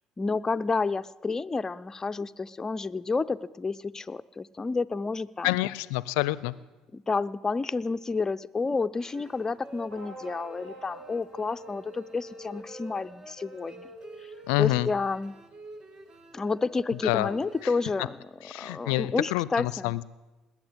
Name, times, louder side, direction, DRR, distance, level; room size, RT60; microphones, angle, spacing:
voice 1, 0.2-5.6 6.9-13.9 14.2-14.3 14.6-15.4 16.3-19.9, left 4 dB, 25° left, 13 dB, 0.6 m, -30 dB
voice 2, 5.4-6.5 14.5-14.9 17.0-17.3 18.5-20.0, left 19 dB, 80° left, 20 dB, 0.5 m, -27 dB
sound 1, 9.0-17.7, right 1 dB, 35° right, 2.1 m, -47 dB
sound 2, 9.9-14.8, right 1 dB, 85° right, 6.5 m, -50 dB
19.5 x 8.9 x 8.0 m, 1.1 s
hypercardioid pair, 65°, 2 cm